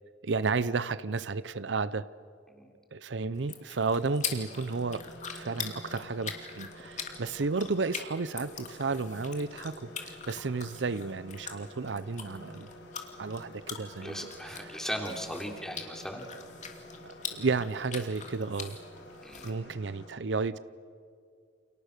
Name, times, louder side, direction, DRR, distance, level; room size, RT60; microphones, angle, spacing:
voice 1, 0.2-2.1 2.9-5.1 5.3-12.7 13.2-14.6 17.0-18.8 19.4-20.6, right 4 dB, 75° right, 16 dB, 0.7 m, -32 dB
sound 1, 3.3-19.5, left 7 dB, 40° left, 2.8 m, -43 dB
sound 2, 4.2-20.1, left 1 dB, 70° left, 5.0 m, -50 dB
voice 2, 14.0-16.3 19.2-19.5, equal, 5° left, 2 dB, 3.5 m, -38 dB
29.5 x 29.0 x 6.7 m, 2.3 s
head